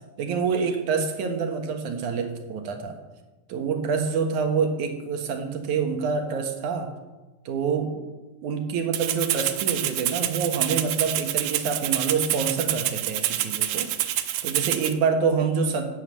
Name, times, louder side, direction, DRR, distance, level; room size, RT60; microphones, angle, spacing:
voice 1, 0.2-3.0 3.5-6.9 7.5-8.0 8.4-13.9 14.4-15.8, right 5 dB, 60° right, 5 dB, 2.6 m, -26 dB
Rattle (instrument), 8.9-14.9, right 13 dB, 75° right, 2.5 m, -27 dB
12.5 x 9.4 x 8.8 m, 1.2 s
omnidirectional pair, 4.3 m